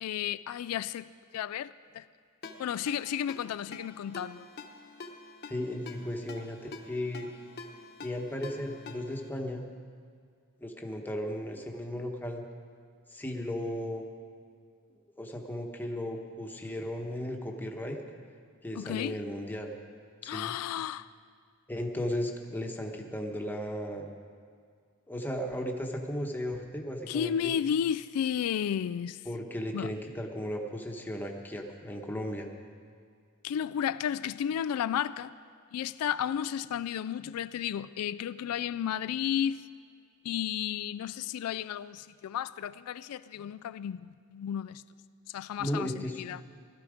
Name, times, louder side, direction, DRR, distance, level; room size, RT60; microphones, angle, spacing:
voice 1, 0.0-1.1 1.3-2.0 2.6-4.5 18.8-19.2 20.2-21.1 27.1-29.2 29.7-29.9 33.4-35.3 35.7-39.6 40.2-44.8 45.3-46.4, left 9 dB, 90° left, 0.3 m, -33 dB
Ringtone, 2.4-9.3, left 3 dB, 50° left, 1.1 m, -47 dB
voice 2, 5.5-7.3 8.0-9.6 10.6-12.4 13.1-14.0 15.2-18.0 18.6-19.7 20.2-20.5 21.7-24.1 25.1-27.5 29.3-32.5 45.6-46.2, left 1 dB, 10° left, 1.1 m, -35 dB
17.0 x 12.5 x 5.0 m
head